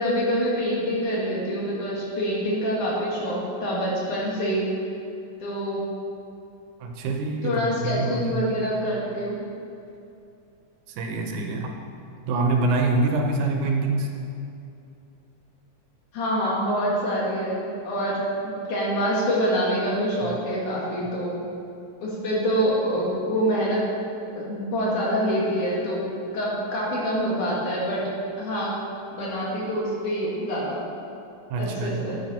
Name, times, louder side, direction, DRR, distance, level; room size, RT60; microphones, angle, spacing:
voice 1, 0.0-4.7 5.4-5.8 7.4-9.4 16.1-21.4 22.0-23.8 24.3-26.1 26.3-28.0 28.4-28.7 29.1-30.8 31.6-32.2, equal, 80° left, -5 dB, 3.7 m, -26 dB
voice 2, 6.8-8.5 10.9-11.7 12.3-14.1 20.2-20.3 31.5-32.2, right 2 dB, 85° right, 2 dB, 2.5 m, -25 dB
9.8 x 9.6 x 4.4 m, 2.6 s
omnidirectional pair, 3.5 m